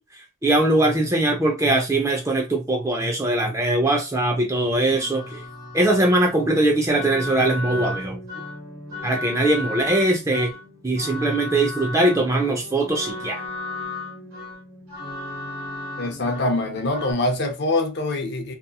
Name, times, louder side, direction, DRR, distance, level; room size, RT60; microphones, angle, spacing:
voice 1, 0.4-5.4 5.7-8.2 9.0-10.5 10.8-13.4, right 1 dB, 15° right, 0.5 m, -21 dB
sound 1, 4.5-17.1, left 2 dB, 65° right, 1.3 m, -35 dB
voice 2, 16.0-18.5, left 2 dB, 50° left, 0.6 m, -24 dB
2.8 x 2.5 x 2.3 m
head